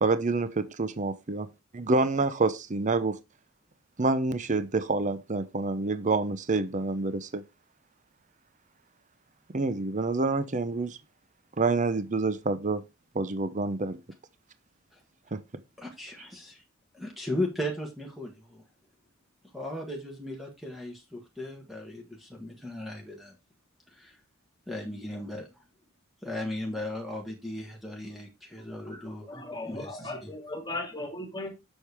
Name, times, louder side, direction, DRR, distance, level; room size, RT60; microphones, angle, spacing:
voice 1, 0.0-3.2 4.0-7.4 9.5-11.0 11.6-12.8 13.1-14.0 15.3-15.4, right 3 dB, 35° right, 0.7 m, -27 dB
voice 2, 15.8-16.6 16.9-18.6 19.5-23.3 24.7-25.5 26.2-29.3 29.7-30.3, left 1 dB, ahead, 1.6 m, -36 dB
voice 3, 28.7-31.5, left 2 dB, 20° left, 2.3 m, -38 dB
7.6 x 6.5 x 3.4 m
head